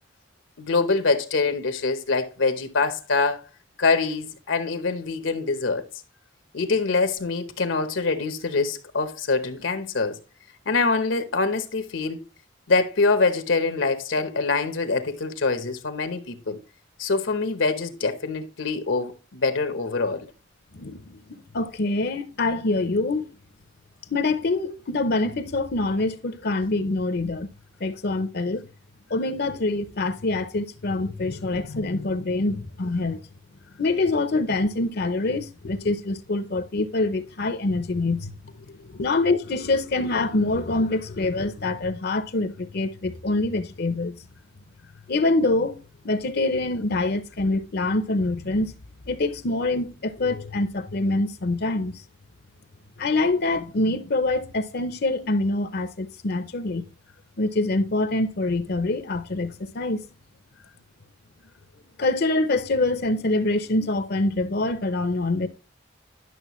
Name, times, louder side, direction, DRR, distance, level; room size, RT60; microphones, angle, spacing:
voice 1, 0.6-3.4 3.8-5.8 6.5-10.2 10.7-12.2 12.7-16.6 17.0-20.3, left 4 dB, 80° left, 0.9 m, -24 dB
voice 2, 20.7-21.2 21.5-23.3 24.1-27.5 27.8-28.6 29.1-33.3 33.8-38.3 38.9-44.2 45.1-45.8 46.0-48.7 49.1-52.0 53.0-56.9 57.4-60.0 62.0-65.5, left 2 dB, 55° left, 0.6 m, -25 dB
11.0 x 6.3 x 3.0 m
head